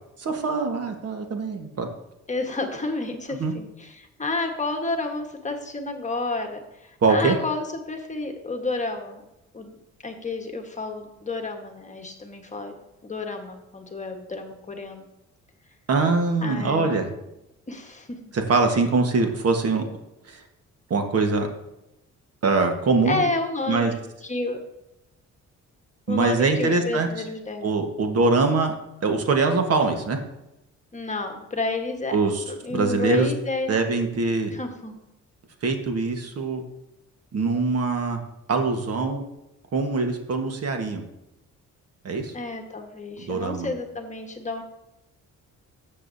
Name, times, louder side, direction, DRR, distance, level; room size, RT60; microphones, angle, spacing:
voice 1, 0.2-1.9 3.4-3.5 7.0-7.4 15.9-17.1 18.3-19.8 20.3-20.4 20.9-21.5 22.4-23.2 23.7-23.9 26.1-27.1 27.6-28.7 29.0-30.2 32.1-32.4 32.7-33.3 33.7-34.5 35.6-36.6 37.3-38.2 38.5-39.2 39.7-41.0 42.0-42.3 43.2-43.7, right 3 dB, 55° right, 5 dB, 1.4 m, -23 dB
voice 2, 2.3-9.2 9.5-9.8 10.0-12.7 13.0-15.1 16.4-17.1 17.7-18.2 23.1-24.0 24.2-24.6 26.1-27.8 30.9-32.1 32.5-33.7 34.5-35.0 42.3-44.6, left 3 dB, 25° left, 4 dB, 1.3 m, -30 dB
13.0 x 7.8 x 2.7 m, 0.90 s
cardioid pair, 90°, 30 cm